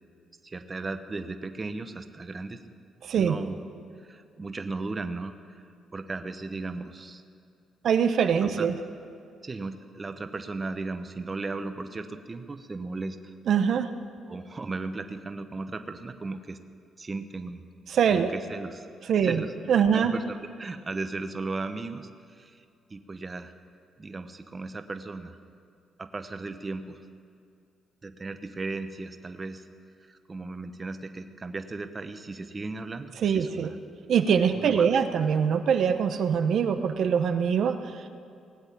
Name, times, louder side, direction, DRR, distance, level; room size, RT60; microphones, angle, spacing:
voice 1, 0.4-2.6 3.1-3.6 4.0-5.6 5.9-7.2 8.4-8.7 9.4-13.3 14.3-16.6 17.0-17.6 18.1-19.5 19.9-22.6 22.9-23.5 24.0-25.4 26.0-27.0 28.0-29.7 30.0-33.8 34.5-35.0, right 3 dB, 30° right, 8 dB, 0.9 m, -36 dB
voice 2, 3.0-3.4 7.8-8.8 13.5-13.9 17.9-18.3 19.1-19.4 19.7-20.1 33.2-33.7 34.1-38.1, right 7 dB, 65° right, 8 dB, 0.8 m, -23 dB
18.5 x 8.0 x 8.5 m, 2.4 s
cardioid pair, 90°, 0 cm